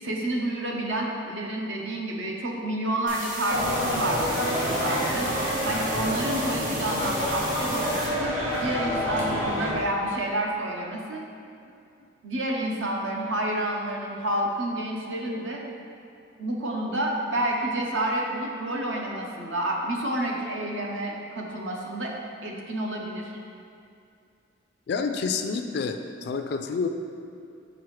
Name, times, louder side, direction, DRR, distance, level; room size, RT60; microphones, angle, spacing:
voice 1, 0.0-5.3 5.6-11.2 12.2-15.7 16.4-22.1 22.4-23.3, right 1 dB, 70° right, -1 dB, 0.8 m, -29 dB
sound 1, 3.1-8.1, right 1 dB, 45° right, 1.5 m, -35 dB
sound 2, 3.5-9.7, equal, 90° right, 1.2 m, -28 dB
voice 2, 24.9-26.9, left 5 dB, 55° left, 6 dB, 0.3 m, -28 dB
6.0 x 4.9 x 3.2 m, 2.5 s
head